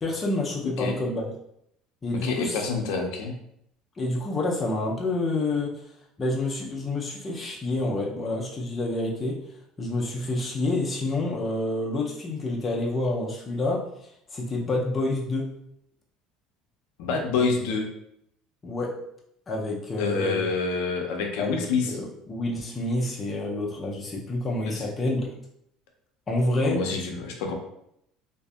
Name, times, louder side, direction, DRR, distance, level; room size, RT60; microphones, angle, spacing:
voice 1, 0.0-1.3 2.0-2.6 4.0-5.8 6.2-9.4 9.8-13.8 14.3-15.5 18.6-18.9 19.5-20.4 21.4-25.3 26.3-26.8, left 2 dB, 25° left, -2 dB, 0.5 m, -28 dB
voice 2, 0.6-1.0 2.2-3.3 17.0-17.9 20.0-22.0 24.8-24.9 26.6-27.6, left 4 dB, 80° left, 2 dB, 0.4 m, -27 dB
2.6 x 2.5 x 2.3 m, 0.74 s
supercardioid pair, 115°, 0 cm